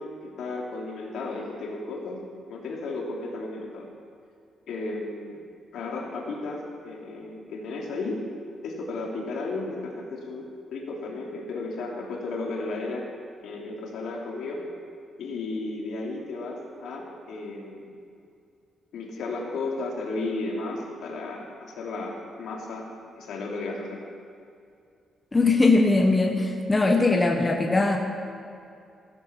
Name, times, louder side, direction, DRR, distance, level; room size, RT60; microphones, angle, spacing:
voice 1, 0.0-2.2 2.5-3.9 4.7-5.4 5.7-8.2 8.6-13.1 13.4-14.7 15.2-17.9 18.9-24.0, left 3 dB, 75° left, -1 dB, 3.0 m, -34 dB
voice 2, 25.3-28.0, left 3 dB, 15° left, 2 dB, 1.1 m, -20 dB
16.0 x 12.5 x 5.9 m, 2.4 s
cardioid pair, 170°, 0 cm